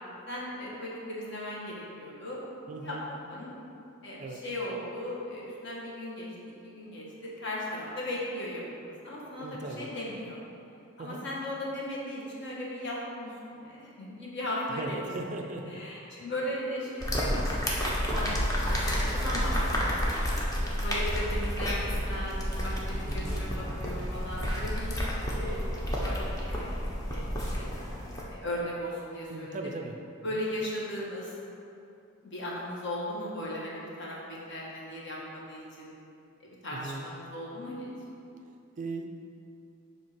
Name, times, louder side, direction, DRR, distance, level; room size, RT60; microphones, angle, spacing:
voice 1, 0.3-2.4 2.8-3.5 4.0-10.4 11.0-15.0 15.4-17.5 18.0-20.0 20.5-24.9 25.2-26.7 27.1-27.7 28.3-29.6 30.2-31.3 32.2-35.9 36.4-37.9, left 1 dB, 55° left, -5 dB, 1.3 m, -37 dB
voice 2, 2.7-3.0 4.2-4.4 9.4-9.9 11.0-11.2 14.7-15.8 23.0-23.4 29.3-30.0 30.3-30.4 36.7-37.1 38.8-39.0, right 3 dB, 35° right, 3 dB, 0.4 m, -38 dB
sound 1, 17.0-28.2, equal, 15° left, 0.7 m, -30 dB
7.3 x 2.8 x 5.8 m, 2.7 s
head